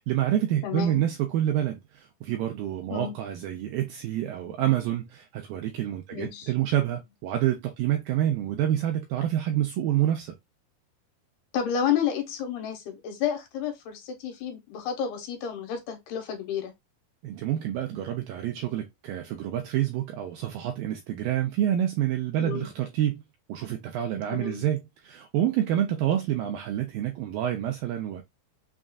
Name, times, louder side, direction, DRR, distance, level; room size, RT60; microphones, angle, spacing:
voice 1, 0.0-10.4 17.2-23.2 23.5-28.2, right 11 dB, 85° right, 2.1 m, -28 dB
voice 2, 0.6-1.0 2.9-3.1 6.1-6.5 11.5-16.7 22.4-22.7 24.3-24.6, left 8 dB, 80° left, 2.8 m, -30 dB
6.3 x 2.4 x 2.3 m
omnidirectional pair, 4.7 m